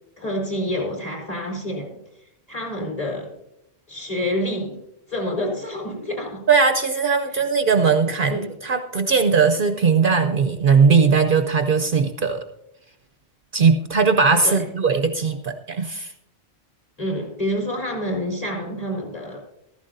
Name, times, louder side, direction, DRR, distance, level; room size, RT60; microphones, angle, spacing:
voice 1, 0.2-2.0 2.5-3.3 3.9-4.8 5.1-6.4 7.3-7.4 8.3-8.5 14.4-14.6 17.0-19.4, equal, 35° left, -1 dB, 3.9 m, -28 dB
voice 2, 6.5-12.4 13.5-16.1, right 5 dB, 55° right, 7 dB, 0.8 m, -19 dB
15.0 x 14.0 x 2.6 m, 0.82 s
omnidirectional pair, 1.1 m